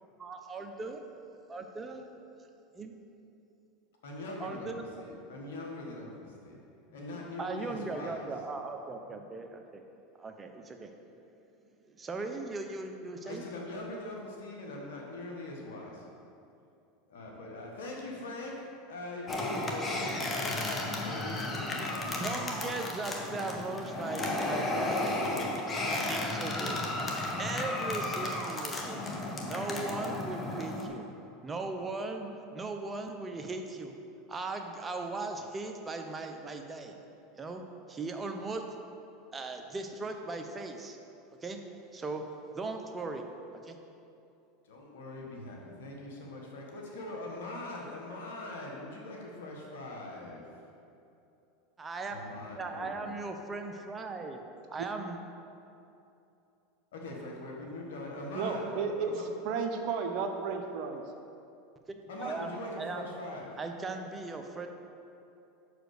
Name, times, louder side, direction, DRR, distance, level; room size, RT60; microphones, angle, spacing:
voice 1, 0.2-1.0 1.5-2.0 2.7-3.0 4.4-4.8 6.9-7.0 7.4-9.8 10.2-10.9 11.9-13.4 22.2-25.2 26.1-26.8 27.4-29.0 29.4-31.1 31.4-33.9 34.3-37.0 37.3-37.6 37.9-38.6 39.3-41.0 41.4-41.6 41.9-42.2 42.5-43.2 43.6-43.8 51.8-52.2 52.6-54.4 54.7-55.2 61.9-63.1 63.6-64.7, right 3 dB, 20° right, 5 dB, 0.8 m, -38 dB
voice 2, 4.0-6.6 6.9-8.3 13.2-16.1 17.1-22.8 44.6-50.5 52.1-53.1 56.9-59.2 62.1-63.6, left 2 dB, 80° left, -1 dB, 1.5 m, -42 dB
sound 1, 19.3-30.9, left 2 dB, 25° left, 1.2 m, -33 dB
voice 3, 58.3-59.2 59.4-61.0, right 5 dB, 60° right, 5 dB, 0.8 m, -33 dB
6.1 x 5.0 x 6.6 m, 2.7 s
hypercardioid pair, 100°, 0 cm